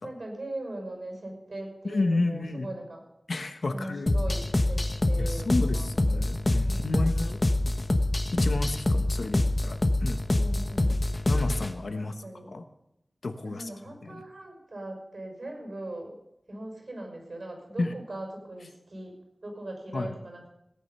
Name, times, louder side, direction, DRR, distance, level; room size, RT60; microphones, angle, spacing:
voice 1, 0.0-3.0 3.7-6.2 6.6-7.2 10.3-11.1 11.9-12.6 13.4-16.2 16.5-20.5, right 1 dB, 65° right, 2 dB, 6.4 m, -40 dB
voice 2, 1.8-2.7 3.3-4.1 5.2-7.4 8.3-10.2 11.3-12.1 12.5-12.6 13.2-13.7 14.0-14.2 17.8-17.9 19.9-20.1, left 2 dB, 85° left, 8 dB, 1.3 m, -31 dB
sound 1, 4.1-11.7, left 1 dB, 35° left, 1.3 m, -26 dB
18.0 x 10.0 x 5.7 m, 0.85 s
wide cardioid pair, 70°, 0 cm